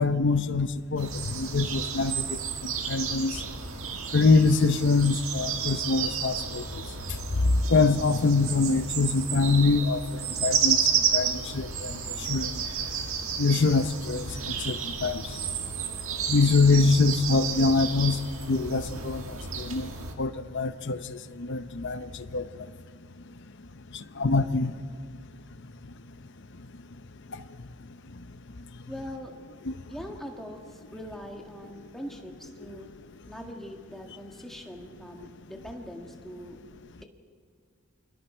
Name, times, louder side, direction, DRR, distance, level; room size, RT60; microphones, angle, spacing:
voice 1, 0.0-3.4 4.1-6.6 7.4-10.8 11.1-12.0 12.3-12.6 13.4-15.2 16.3-18.2 18.5-19.9 20.2-22.5 23.9-24.7 29.6-29.7, left 3 dB, 55° left, 0.7 m, -24 dB
sound 1, 1.0-20.1, right 7 dB, 65° right, 1.8 m, -31 dB
voice 2, 28.9-29.3 29.9-32.9 33.3-36.6, equal, ahead, 1.7 m, -42 dB
29.5 x 23.5 x 4.5 m
head